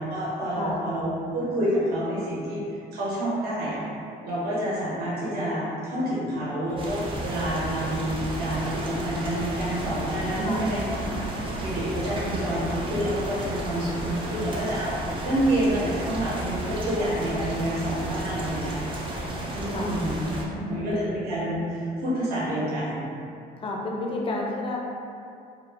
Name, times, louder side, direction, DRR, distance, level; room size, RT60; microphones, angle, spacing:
voice 1, 0.0-2.6 2.9-3.8 4.2-11.2 11.6-19.0 19.5-20.2 20.7-23.0, right 1 dB, 65° right, -8 dB, 0.7 m, -28 dB
voice 2, 0.5-0.9 10.4-10.7 14.3-14.4 19.7-20.0 20.3-21.2 23.6-24.8, left 2 dB, 35° left, -1 dB, 0.4 m, -31 dB
sound 1, 6.8-20.5, right 1 dB, 30° right, 0.4 m, -33 dB
2.1 x 2.0 x 3.2 m, 2.4 s
cardioid pair, 110°, 17 cm